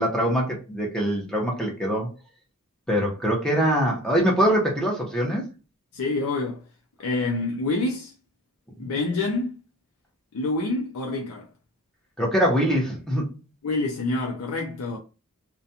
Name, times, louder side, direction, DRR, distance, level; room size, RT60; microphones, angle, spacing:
voice 1, 0.0-2.1 2.9-5.5 12.2-13.3, equal, 5° left, 0.8 m, -23 dB
voice 2, 5.9-6.6 7.0-8.1 8.8-9.6 10.3-11.5 13.6-15.0, left 2 dB, 85° left, 0.5 m, -27 dB
2.4 x 2.2 x 2.7 m
head